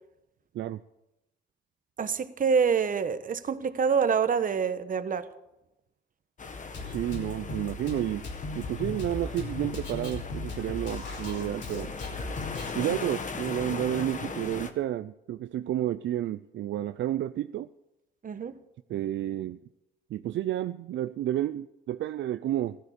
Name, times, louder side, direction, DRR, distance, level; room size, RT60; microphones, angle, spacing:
voice 1, 2.0-5.3 18.2-18.6, right 6 dB, 45° right, 11 dB, 1.2 m, -26 dB
sound 1, 6.4-14.7, left 4 dB, 40° left, 1.6 m, -39 dB
Drum kit, 6.7-12.7, left 3 dB, 65° left, 4.9 m, -37 dB
voice 2, 6.8-8.3 8.5-11.9 12.7-17.7 18.9-19.6 20.1-22.8, right 12 dB, 65° right, 11 dB, 0.5 m, -31 dB
15.5 x 13.0 x 6.7 m, 0.90 s
cardioid pair, 90°, 20 cm